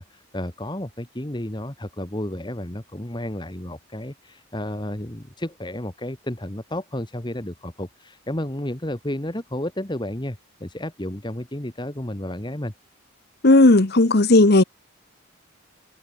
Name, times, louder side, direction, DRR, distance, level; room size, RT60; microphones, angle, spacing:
voice 1, 0.0-12.7, left 1 dB, 20° left, 1.7 m, -32 dB
voice 2, 13.4-14.6, left 2 dB, 45° left, 1.1 m, -14 dB
open air
head